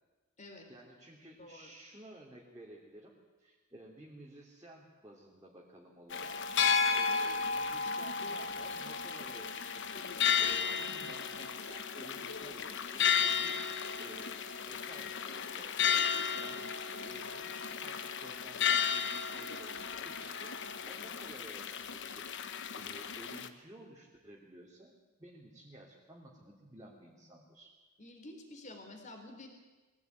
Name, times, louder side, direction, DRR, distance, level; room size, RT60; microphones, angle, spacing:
voice 1, 0.7-3.1 3.4-10.1 10.4-13.6 14.0-14.3 14.7-16.0 16.3-16.6 17.0-20.5 20.9-22.3 22.7-24.9 25.2-27.7, right 1 dB, 15° right, -4 dB, 3.0 m, -54 dB
voice 2, 1.4-1.7 28.0-29.5, left 2 dB, 35° left, 4 dB, 3.9 m, -49 dB
sound 1, 6.1-23.5, left 6 dB, 55° left, 1.1 m, -34 dB
22.0 x 17.0 x 9.5 m, 1.2 s
head